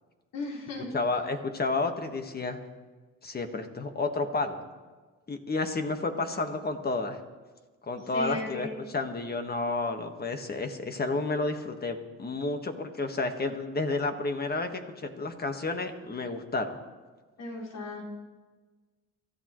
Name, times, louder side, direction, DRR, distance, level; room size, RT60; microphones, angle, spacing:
voice 1, 0.3-0.9 8.1-8.7 17.4-18.0, left 2 dB, 75° left, -6 dB, 5.2 m, -35 dB
voice 2, 0.9-2.6 3.2-4.6 5.3-7.2 7.8-16.8, left 3 dB, 30° left, 5 dB, 1.6 m, -31 dB
25.5 x 14.0 x 3.2 m, 1.3 s
cardioid pair, 100°, 31 cm